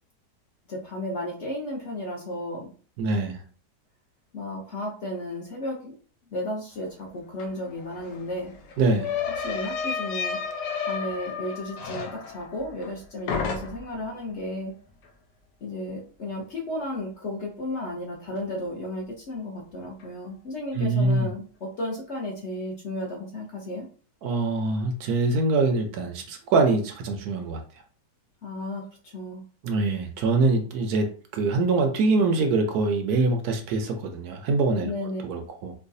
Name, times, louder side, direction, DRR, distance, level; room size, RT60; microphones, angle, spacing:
voice 1, 0.7-2.7 4.3-5.8 6.3-8.5 9.4-10.4 10.8-14.7 15.6-23.9 28.4-28.8 29.1-29.4 34.8-35.2, left 1 dB, 55° left, -1 dB, 0.9 m, -33 dB
voice 2, 3.0-3.4 8.8-9.1 20.8-21.3 24.2-27.6 29.6-34.9 35.2-35.7, right 3 dB, 70° right, 5 dB, 1.0 m, -24 dB
sound 1, 7.4-7.5 7.7-13.0 13.3-14.0, left 6 dB, 90° left, 1.3 m, -32 dB
4.7 x 2.2 x 2.6 m, 0.40 s
omnidirectional pair, 1.8 m